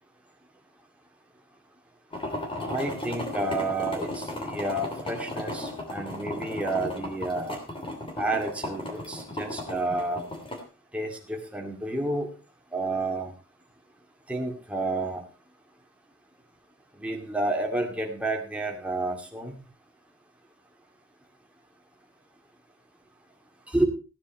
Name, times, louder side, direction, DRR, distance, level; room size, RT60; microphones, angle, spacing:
sound 1, 2.1-10.6, left 1 dB, 25° left, 3.0 m, -35 dB
voice 1, 2.7-7.6 8.2-10.2 10.9-12.3 12.7-13.3 14.3-15.2 17.0-19.6 23.7-23.8, right 2 dB, 5° right, 1 dB, 2.4 m, -30 dB
16.0 x 9.4 x 4.4 m, 0.34 s
head